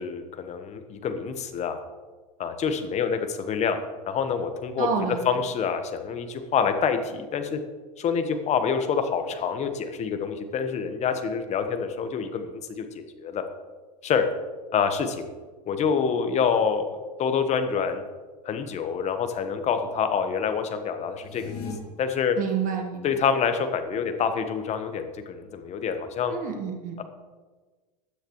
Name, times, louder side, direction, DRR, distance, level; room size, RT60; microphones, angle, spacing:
voice 1, 0.0-1.8 2.4-3.8 4.1-4.9 5.2-7.6 8.0-13.4 14.0-14.3 14.7-15.3 15.7-16.8 17.2-18.0 18.4-21.7 22.0-22.4 23.0-26.3 27.0-27.1, left 6 dB, 35° left, 7 dB, 1.4 m, -27 dB
voice 2, 4.8-5.2 22.4-23.1 26.3-27.0, right 6 dB, 40° right, 2 dB, 1.7 m, -29 dB
sound 1, 21.1-21.7, left 7 dB, 70° left, 3.4 m, -37 dB
15.5 x 10.0 x 3.2 m, 1.4 s
hypercardioid pair, 95°, 21 cm